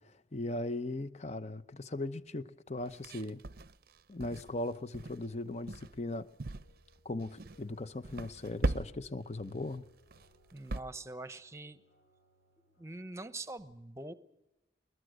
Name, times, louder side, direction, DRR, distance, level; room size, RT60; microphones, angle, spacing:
voice 1, 0.0-3.4 4.1-6.3 7.0-9.8, left 2 dB, 35° left, 0.8 m, -38 dB
sound 1, 2.9-4.7 4.9-5.3 5.7-6.0 6.4-6.9 7.2-7.6 8.0-9.2 9.5-9.7 10.1-10.8, right 2 dB, 50° right, 0.6 m, -38 dB
sound 2, 6.6-13.6, equal, 70° left, 4.5 m, -67 dB
voice 2, 10.5-11.8 12.8-14.1, right 2 dB, 15° right, 0.9 m, -44 dB
21.5 x 21.0 x 6.4 m
head